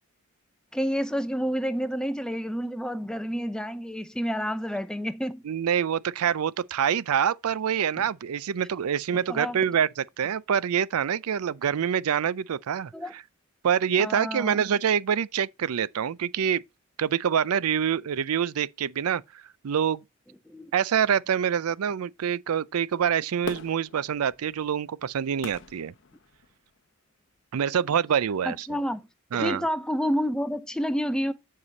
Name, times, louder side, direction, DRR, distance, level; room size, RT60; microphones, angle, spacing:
voice 1, 0.7-5.4 8.0-8.1 9.1-9.6 12.9-13.1 14.0-14.6 20.5-20.7 28.5-29.0 29.3-31.3, equal, 5° left, 0.5 m, -29 dB
voice 2, 5.4-13.2 13.6-16.6 17.0-19.2 19.6-20.0 20.7-25.9 27.5-28.7 29.3-29.6, right 8 dB, 90° right, 0.4 m, -26 dB
Fireworks, 23.4-26.8 27.3-27.4, left 4 dB, 55° left, 0.8 m, -41 dB
9.8 x 4.8 x 4.0 m
head